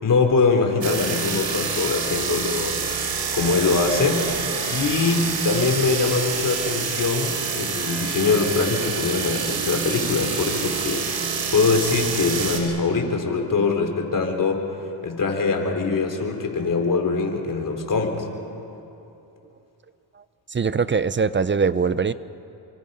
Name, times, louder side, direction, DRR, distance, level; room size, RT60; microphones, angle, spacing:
voice 1, 0.0-2.8 3.3-4.2 4.7-14.6 15.0-18.2, left 4 dB, 45° left, 3 dB, 3.8 m, -23 dB
sound 1, 0.8-12.6, right 5 dB, 85° right, 3.8 m, -27 dB
voice 2, 20.5-22.1, right 5 dB, 25° right, 15 dB, 0.6 m, -22 dB
28.0 x 24.5 x 5.6 m, 2.9 s
cardioid pair, 80°, 44 cm